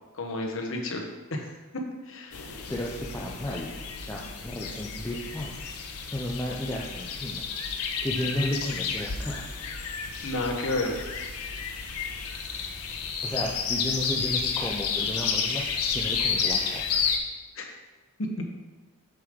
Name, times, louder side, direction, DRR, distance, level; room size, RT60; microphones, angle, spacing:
voice 1, 0.2-1.5 1.7-2.5 10.2-11.0 17.6-17.7 18.4-18.5, left 2 dB, 60° left, 1 dB, 1.1 m, -31 dB
sound 1, 2.3-17.2, left 6 dB, 90° left, 0.8 m, -31 dB
voice 2, 2.7-3.7 4.1-5.5 6.1-7.4 8.0-9.4 13.2-16.9, left 1 dB, 10° left, -3 dB, 0.6 m, -33 dB
7.9 x 5.2 x 3.7 m, 1.2 s
head